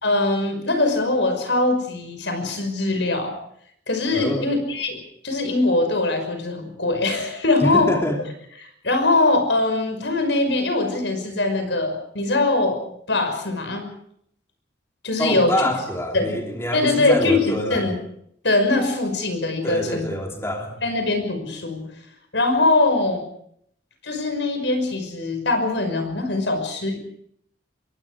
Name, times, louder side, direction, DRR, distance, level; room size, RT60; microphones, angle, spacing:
voice 1, 0.0-3.3 3.9-5.0 5.2-7.9 8.8-13.8 15.0-15.5 16.1-16.4 16.7-17.4 17.7-18.0 18.4-20.1 20.8-21.9 22.3-23.2 24.0-27.0, left 2 dB, 80° left, 7 dB, 5.9 m, -22 dB
voice 2, 4.1-4.5 7.6-8.2 15.2-18.0 19.6-20.8, equal, 15° left, 1 dB, 3.0 m, -25 dB
26.5 x 23.0 x 5.0 m, 0.69 s
head